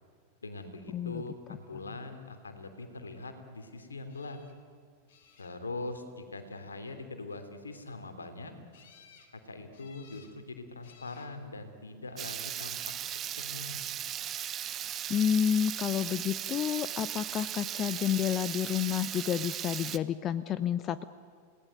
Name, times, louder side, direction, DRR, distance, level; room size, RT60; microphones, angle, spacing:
voice 1, 0.4-4.4 5.4-8.5 9.4-12.8 13.4-13.8, left 2 dB, 75° left, 8 dB, 3.1 m, -42 dB
voice 2, 0.9-1.2 15.1-21.0, left 9 dB, 30° left, 15 dB, 0.7 m, -30 dB
sound 1, 4.1-4.5 5.1-5.8 8.7-9.3 9.7-10.3 10.8-11.3 12.2-12.7 18.9-19.0 19.4-19.5, left 7 dB, 55° left, 3.7 m, -59 dB
Water tap faucet / Liquid, 12.2-20.0, right 11 dB, 30° right, 0.9 m, -37 dB
29.5 x 18.5 x 9.3 m, 2.1 s
figure-of-eight pair, 90°, 0 cm